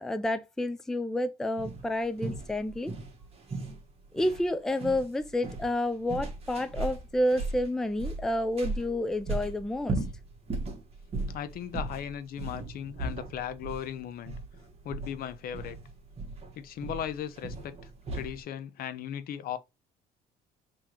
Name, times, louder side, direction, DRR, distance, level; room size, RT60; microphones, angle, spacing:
voice 1, 0.0-2.9 4.1-10.0, left 1 dB, 5° left, 0.4 m, -30 dB
sound 1, 1.6-18.4, right 2 dB, 35° right, 1.4 m, -37 dB
voice 2, 11.3-14.4 14.8-15.8 16.6-19.6, left 9 dB, 60° left, 0.6 m, -37 dB
3.7 x 3.0 x 4.4 m
cardioid pair, 110°, 17 cm